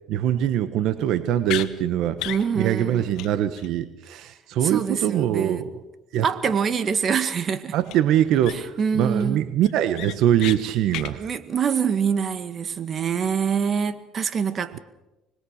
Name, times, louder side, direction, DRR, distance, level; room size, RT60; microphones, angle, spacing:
voice 1, 0.1-2.2 2.5-5.8 6.1-6.3 7.7-11.2, right 11 dB, 70° right, 1.3 m, -23 dB
sound 1, 1.5-1.7 2.2-2.4 2.8-2.9 3.2-3.3 3.6-3.7 7.9-8.0 8.4-8.8 9.2-9.3 9.7-10.6 10.9-11.1, left 14 dB, 70° left, 1.5 m, -32 dB
voice 2, 2.3-3.1 4.6-5.6 6.2-7.7 8.5-9.4 11.2-14.8, right 6 dB, 45° right, 1.9 m, -25 dB
25.5 x 21.0 x 6.6 m
supercardioid pair, 95°, 0 cm